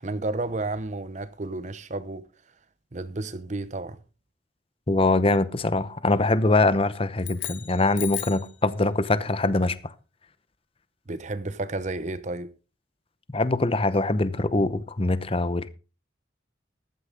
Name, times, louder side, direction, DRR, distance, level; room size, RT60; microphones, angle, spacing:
voice 1, 0.0-2.3 2.9-4.0 11.1-12.5, right 2 dB, 40° right, 0.8 m, -32 dB
voice 2, 4.9-9.9 13.3-15.7, left 2 dB, 30° left, 0.8 m, -23 dB
sound 1, 7.2-8.6, left 13 dB, 80° left, 1.8 m, -35 dB
14.5 x 11.5 x 3.9 m
head